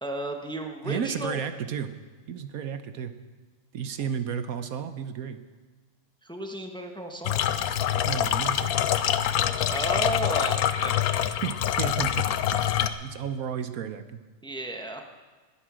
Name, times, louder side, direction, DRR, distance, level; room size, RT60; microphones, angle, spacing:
voice 1, 0.0-1.4 6.2-7.4 9.7-10.9 14.4-15.0, right 1 dB, 5° left, 3 dB, 1.1 m, -33 dB
voice 2, 0.8-1.9 2.3-3.1 3.7-5.4 8.0-8.7 11.2-12.3 12.5-14.0, right 8 dB, 75° right, 11 dB, 1.2 m, -33 dB
sound 1, 7.2-12.9, left 10 dB, 80° left, 1.2 m, -25 dB
20.0 x 8.9 x 6.2 m, 1.4 s
omnidirectional pair, 1.6 m